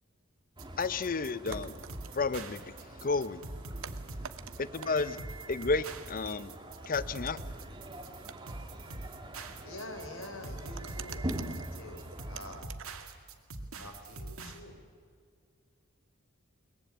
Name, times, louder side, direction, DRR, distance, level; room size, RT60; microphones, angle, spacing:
sound 1, 0.6-12.6, right 1 dB, 25° right, 2.0 m, -44 dB
sound 2, 0.6-14.6, right 2 dB, 85° right, 2.4 m, -44 dB
voice 1, 0.8-1.9 2.1-2.7 3.0-3.5 4.6-5.2 5.5-6.5 6.9-7.4, left 4 dB, 40° left, 15 dB, 0.7 m, -32 dB
sound 3, 1.0-1.1 1.5-2.2 2.6-2.9 3.5-5.2 6.2-7.7 8.3-8.9 10.6-13.1, right 7 dB, 65° right, 0.9 m, -48 dB
voice 2, 9.6-12.7 13.8-14.8, left 1 dB, 70° left, 6 dB, 4.2 m, -46 dB
22.5 x 21.0 x 8.5 m, 2.2 s
head